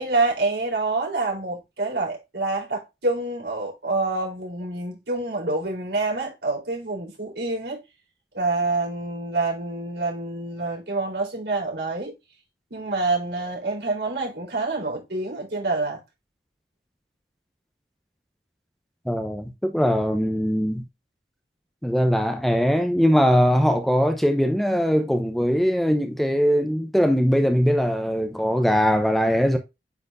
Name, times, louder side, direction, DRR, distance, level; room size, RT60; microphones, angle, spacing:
voice 1, 0.0-7.8 8.3-12.2 12.7-16.0, right 3 dB, 75° right, 4.3 m, -27 dB
voice 2, 19.0-20.8 21.8-29.6, equal, ahead, 0.7 m, -21 dB
9.5 x 4.3 x 2.5 m
head